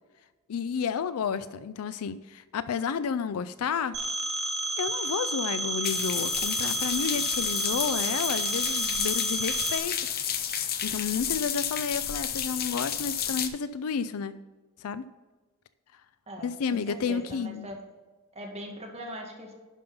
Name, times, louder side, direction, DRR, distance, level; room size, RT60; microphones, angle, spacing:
voice 1, 0.5-4.0 4.8-9.9 10.8-14.3 14.8-15.1 16.4-17.7, left 6 dB, 85° left, 14 dB, 0.4 m, -31 dB
Telephone, 3.9-9.8, right 2 dB, 80° right, 1.9 m, -31 dB
sound 1, 5.8-13.5, left 9 dB, 45° left, 0.8 m, -31 dB
voice 2, 16.3-17.8 18.3-19.5, right 1 dB, 30° right, 0 dB, 1.9 m, -41 dB
11.5 x 5.4 x 5.4 m, 1.3 s
head